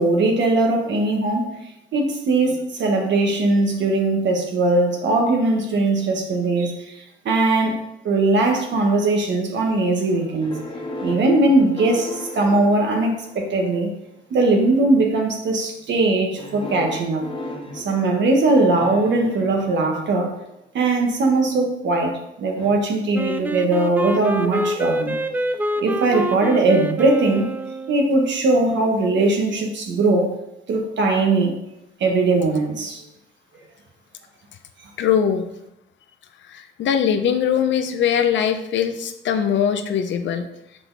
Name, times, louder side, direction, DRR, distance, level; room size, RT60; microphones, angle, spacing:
voice 1, 0.0-1.5 1.9-10.6 11.0-13.9 14.3-17.2 17.7-20.3 20.7-25.2 25.8-27.5 27.9-30.3 30.7-31.5 32.0-33.0, right 2 dB, 65° right, 2 dB, 1.4 m, -20 dB
sound 1, 10.4-13.8 14.5-15.0 16.4-20.5 22.6-22.7, left 1 dB, 25° left, 1.4 m, -36 dB
Wind instrument woodwind instrument, 23.1-28.2, right 1 dB, 10° right, 0.3 m, -26 dB
voice 2, 35.0-35.4 36.5-40.5, left 8 dB, 70° left, 8 dB, 0.8 m, -21 dB
6.1 x 4.8 x 4.0 m, 0.86 s
cardioid pair, 90°, 20 cm